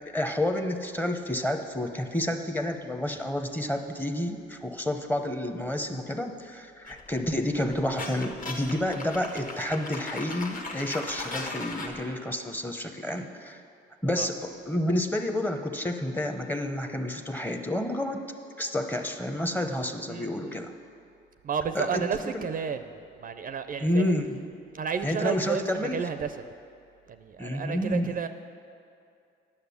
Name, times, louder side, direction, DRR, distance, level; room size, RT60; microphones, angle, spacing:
voice 1, 0.1-13.6 14.0-18.2 18.6-20.7 21.7-22.4 23.8-24.4 25.0-26.0 27.4-28.1, left 1 dB, 10° left, 6 dB, 0.8 m, -30 dB
sound 1, 6.9-12.0, left 3 dB, 40° left, 1.3 m, -38 dB
voice 2, 20.1-20.6 21.4-24.2 24.7-26.5 27.1-28.3, right 6 dB, 45° right, 9 dB, 0.5 m, -32 dB
9.6 x 6.6 x 7.0 m, 2.5 s
cardioid pair, 90°, 20 cm